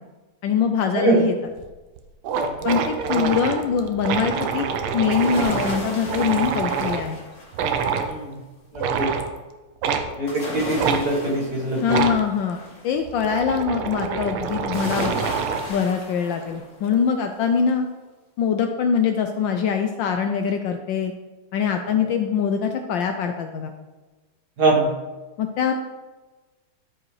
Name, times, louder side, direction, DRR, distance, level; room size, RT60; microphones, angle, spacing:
voice 1, 0.4-1.3 2.6-4.7 4.9-7.2 11.8-15.2 15.7-17.9 18.4-21.1 21.5-23.7 25.4-25.7, left 7 dB, 75° left, 5 dB, 1.1 m, -23 dB
sound 1, 1.6-1.7 2.0-2.1 2.2-7.1 7.5-8.1 8.8-9.3 9.8-10.1 10.8-11.0 11.9-12.2 13.0-15.7, right 6 dB, 85° right, 1.6 m, -26 dB
voice 2, 2.4-2.7 8.0-8.4 8.7-9.1 10.2-12.0 22.0-22.1 24.6-24.9, right 2 dB, 50° right, -3 dB, 2.1 m, -23 dB
sound 2, 5.1-7.9 10.3-12.9 14.7-17.0 17.4-17.5, left 1 dB, 35° left, 1.7 m, -34 dB
13.0 x 4.9 x 3.3 m, 1.2 s
omnidirectional pair, 2.4 m